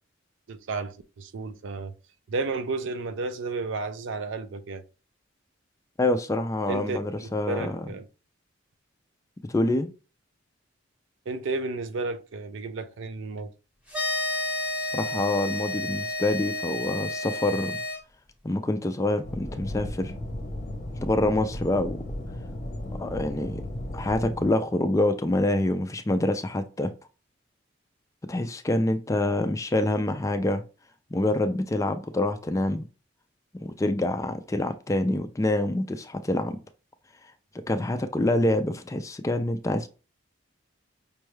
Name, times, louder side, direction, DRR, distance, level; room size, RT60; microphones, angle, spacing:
voice 1, 0.5-1.9 2.3-4.8 6.7-8.1 11.3-13.5, right 3 dB, 65° right, 0.4 m, -32 dB
voice 2, 6.0-7.8 9.5-9.9 14.8-17.8 18.4-20.1 20.9-22.0 23.0-23.6 23.9-26.9 28.3-30.6 31.1-32.9 33.6-36.6 37.5-39.9, left 1 dB, 15° left, 0.3 m, -26 dB
sound 1, 13.9-18.0, left 2 dB, 5° right, 0.8 m, -31 dB
sound 2, 19.2-24.5, left 1 dB, 35° left, 0.7 m, -35 dB
5.2 x 2.3 x 3.1 m
head